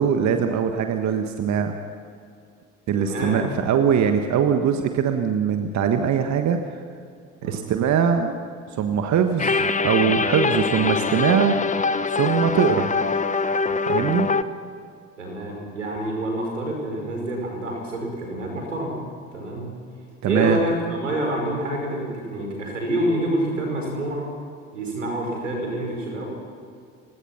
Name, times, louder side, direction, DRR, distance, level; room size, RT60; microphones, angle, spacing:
voice 1, 0.0-1.7 2.9-6.8 7.4-8.3 8.7-11.6 12.1-12.9 13.8-14.3 20.2-20.6, right 7 dB, 50° right, 6 dB, 1.5 m, -22 dB
voice 2, 3.0-3.6 7.4-7.7 15.2-19.0 19.3-19.7 20.3-24.3 24.7-26.3, right 1 dB, 85° right, 1 dB, 5.3 m, -27 dB
sound 1, 9.4-14.4, left 4 dB, 20° left, 1.0 m, -23 dB
29.5 x 17.0 x 5.9 m, 2.3 s
figure-of-eight pair, 55°, 37 cm